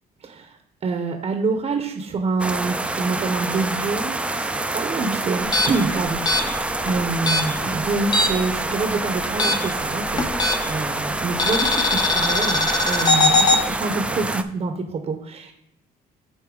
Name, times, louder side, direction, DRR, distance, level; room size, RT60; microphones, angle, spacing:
voice 1, 0.2-0.6 0.8-10.3 10.7-15.5, right 3 dB, 35° right, 5 dB, 0.8 m, -26 dB
sound 1, 2.4-14.4, right 2 dB, 5° right, 0.4 m, -27 dB
sound 2, 5.4-8.5 8.8-10.9 11.4-13.6, left 2 dB, 25° left, 0.8 m, -21 dB
9.2 x 4.1 x 3.8 m, 0.82 s
cardioid pair, 110°, 17 cm